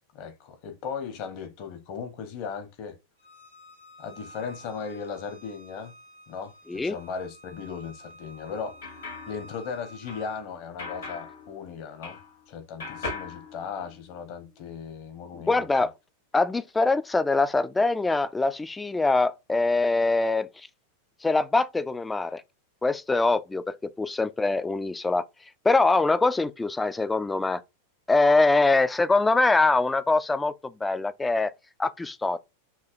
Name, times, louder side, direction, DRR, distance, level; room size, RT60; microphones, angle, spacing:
voice 1, 0.1-3.0 4.0-5.9 6.3-8.8 9.3-12.2 12.5-15.7, left 6 dB, 45° left, 1.0 m, -37 dB
Bowed string instrument, 3.2-10.4, equal, 85° left, 1.8 m, -50 dB
sound 1, 8.4-12.5 12.8-14.3, left 3 dB, 65° left, 1.3 m, -40 dB
voice 2, 15.5-15.9 16.3-20.7 21.2-22.4 22.8-25.2 25.6-27.6 28.1-31.5 31.8-32.4, left 3 dB, 10° left, 0.3 m, -23 dB
5.7 x 2.7 x 2.5 m
figure-of-eight pair, 90°, 0 cm